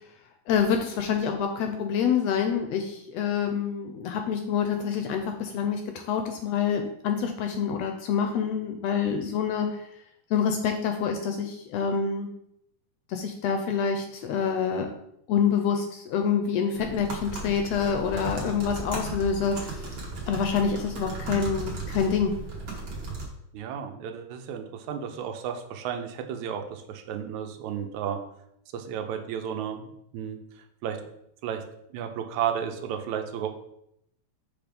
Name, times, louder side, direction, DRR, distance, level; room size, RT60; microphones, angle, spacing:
voice 1, 0.5-9.9 10.3-12.3 13.1-14.9 15.3-19.9 20.3-22.3, left 7 dB, 80° left, 5 dB, 1.6 m, -27 dB
sound 1, 16.8-23.3, right 3 dB, 50° right, 1.4 m, -36 dB
voice 2, 23.5-28.2 28.7-30.4 30.8-31.1 31.4-31.6 31.9-33.5, right 8 dB, 85° right, 6 dB, 2.0 m, -33 dB
6.1 x 3.4 x 5.1 m, 0.76 s
omnidirectional pair, 3.3 m